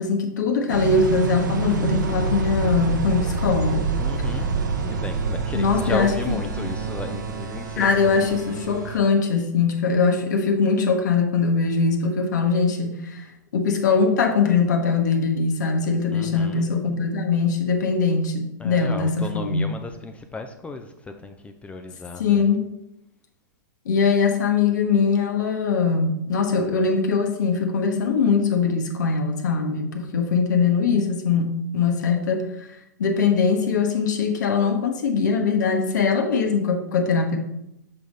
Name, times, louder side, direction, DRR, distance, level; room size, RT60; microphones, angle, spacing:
voice 1, 0.0-3.9 5.5-6.4 6.6-6.7 7.8-19.7 22.2-22.7 23.8-32.7 33.0-37.4, left 5 dB, 65° left, 4 dB, 1.0 m, -22 dB
sound 1, 0.7-9.0, right 4 dB, 70° right, 0.8 m, -27 dB
voice 2, 4.0-4.5 4.8-8.2 16.1-16.7 18.6-20.9 21.2-22.5, left 3 dB, 10° left, 6 dB, 0.4 m, -34 dB
6.7 x 3.6 x 4.0 m, 0.84 s
figure-of-eight pair, 105°, 11 cm